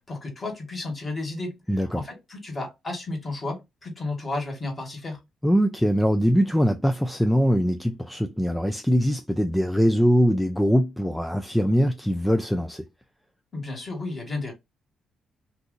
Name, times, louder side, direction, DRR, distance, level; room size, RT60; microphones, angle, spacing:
voice 1, 0.1-5.2 13.5-14.5, left 2 dB, 30° left, 1.4 m, -33 dB
voice 2, 1.7-2.0 5.4-12.9, equal, 5° left, 0.3 m, -22 dB
2.6 x 2.4 x 3.8 m
cardioid pair, 90°, 0 cm